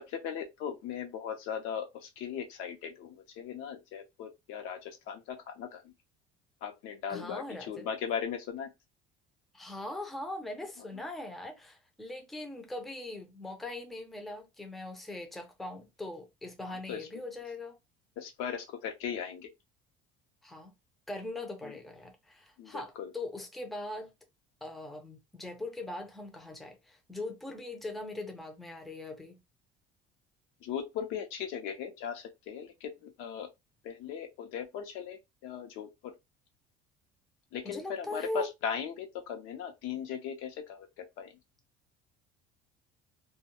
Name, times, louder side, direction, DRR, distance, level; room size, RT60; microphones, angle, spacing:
voice 1, 0.0-5.9 6.6-8.7 16.6-17.1 18.2-19.5 21.6-21.8 22.6-23.1 30.6-33.5 33.8-36.1 37.5-41.3, left 8 dB, 80° left, 0.7 m, -38 dB
voice 2, 7.1-7.9 9.5-17.8 20.4-20.7 21.1-24.1 24.6-29.4 37.6-38.5, left 2 dB, ahead, 0.4 m, -41 dB
2.2 x 2.2 x 2.8 m
cardioid pair, 140°, 21 cm